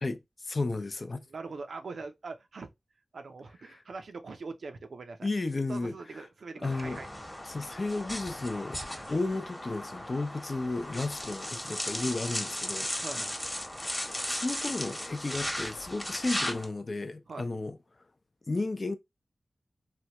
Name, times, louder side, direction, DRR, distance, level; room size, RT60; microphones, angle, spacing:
voice 1, 0.0-1.2 3.7-3.8 5.2-6.3 6.6-7.0 7.4-8.8 9.1-12.9 14.0-17.8 18.5-18.9, left 2 dB, 50° left, 0.4 m, -33 dB
voice 2, 1.3-2.7 3.1-5.3 5.7-7.1 8.9-9.1 13.0-13.4 17.3-17.5, right 4 dB, 80° right, 0.5 m, -42 dB
sound 1, 6.6-16.7, left 1 dB, 15° left, 0.9 m, -36 dB
3.3 x 2.2 x 2.8 m
cardioid pair, 50°, 0 cm